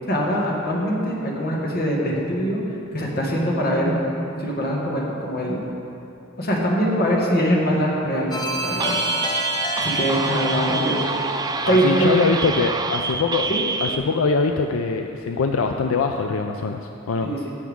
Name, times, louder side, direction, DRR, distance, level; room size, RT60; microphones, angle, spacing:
voice 1, 0.1-2.6 2.9-3.9 4.4-5.6 6.4-8.9 9.8-11.0 11.7-12.1 13.5-13.6 17.2-17.4, equal, 50° left, -3 dB, 1.8 m, -22 dB
sound 1, 8.3-13.1, equal, 20° left, 0.8 m, -30 dB
sound 2, 8.8-14.0, right 4 dB, 20° right, 0.4 m, -26 dB
voice 2, 11.7-13.5 13.8-17.3, left 4 dB, 80° left, 5 dB, 0.4 m, -23 dB
16.0 x 7.2 x 3.6 m, 2.8 s
head